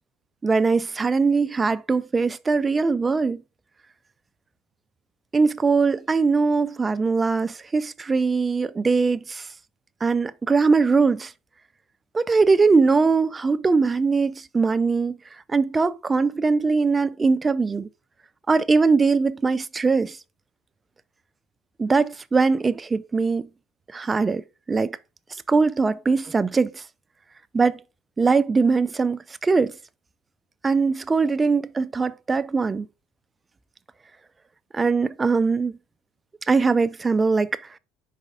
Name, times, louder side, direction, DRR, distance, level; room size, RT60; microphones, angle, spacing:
voice 1, 0.4-3.4 5.3-9.5 10.0-11.3 12.1-15.2 15.5-17.9 18.5-20.2 21.8-23.5 23.9-24.4 24.7-25.0 25.5-26.8 27.5-27.8 28.2-29.8 30.6-32.9 34.7-35.8 36.5-37.6, right 4 dB, 20° right, 0.4 m, -21 dB
5.2 x 4.1 x 4.9 m
supercardioid pair, 115°, 0 cm